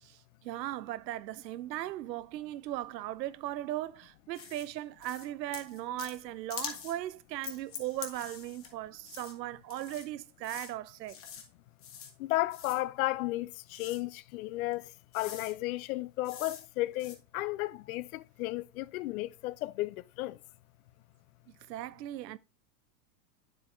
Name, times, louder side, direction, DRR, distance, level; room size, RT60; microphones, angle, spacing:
voice 1, 0.0-11.2 21.7-22.4, right 14 dB, 85° right, 0.6 m, -38 dB
sound 1, 4.4-4.7 5.0-5.3 5.5-6.2 6.5-7.0 7.4-8.7 9.0-9.3 9.7-10.1 10.4-10.7 11.1-11.5 11.8-12.1 12.5-12.8 13.7-14.0 14.7-14.8 15.1-15.5 16.2-16.6 16.9-17.2, left 7 dB, 25° left, 1.2 m, -44 dB
voice 2, 12.2-20.4, left 18 dB, 60° left, 0.5 m, -34 dB
8.4 x 7.6 x 2.5 m
hypercardioid pair, 120°, 49 cm